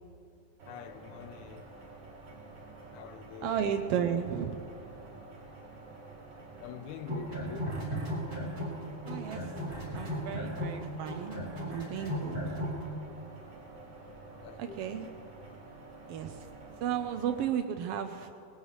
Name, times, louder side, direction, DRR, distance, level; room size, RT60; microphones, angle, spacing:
sound 1, 0.6-17.5, right 3 dB, 50° right, 3.7 m, -49 dB
voice 1, 0.7-1.7 2.9-3.7 6.6-7.8 14.4-15.1, left 9 dB, 85° left, 2.1 m, -45 dB
voice 2, 3.4-4.6 9.1-9.4 9.9-11.4 11.7-12.4 14.6-15.1 16.1-16.4 16.8-18.3, right 8 dB, 85° right, 1.3 m, -33 dB
sound 2, 7.0-8.8 9.0-12.8, equal, 30° right, 4.2 m, -35 dB
20.0 x 18.5 x 3.2 m
omnidirectional pair, 3.4 m